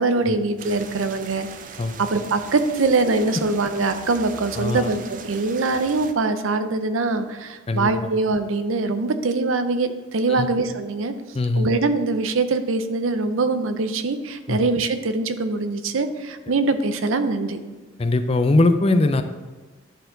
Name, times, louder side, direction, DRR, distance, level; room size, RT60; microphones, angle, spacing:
voice 1, 0.0-1.5 2.0-11.1 11.6-17.6, right 3 dB, 85° right, 9 dB, 0.6 m, -23 dB
sound 1, 0.6-6.1, right 5 dB, 40° right, 0.5 m, -40 dB
voice 2, 4.6-4.9 7.7-7.9 10.3-10.5 11.3-11.7 14.5-14.6 18.0-19.2, left 2 dB, 30° left, 9 dB, 0.4 m, -20 dB
11.0 x 4.4 x 3.9 m, 1.3 s
head